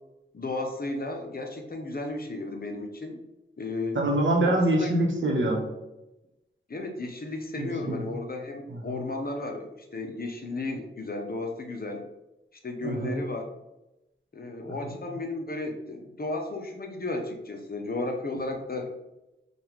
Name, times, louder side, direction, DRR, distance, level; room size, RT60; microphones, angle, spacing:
voice 1, 0.3-3.2 3.6-4.0 4.4-4.9 6.7-12.0 12.6-13.5 14.3-18.9, left 2 dB, 50° left, 3 dB, 0.7 m, -34 dB
voice 2, 3.9-5.6 7.6-8.0 8.7-9.0 12.8-13.2 14.8-14.9, right 1 dB, 70° right, 0 dB, 1.0 m, -25 dB
5.2 x 2.4 x 3.1 m, 0.95 s
wide cardioid pair, 50°, 20 cm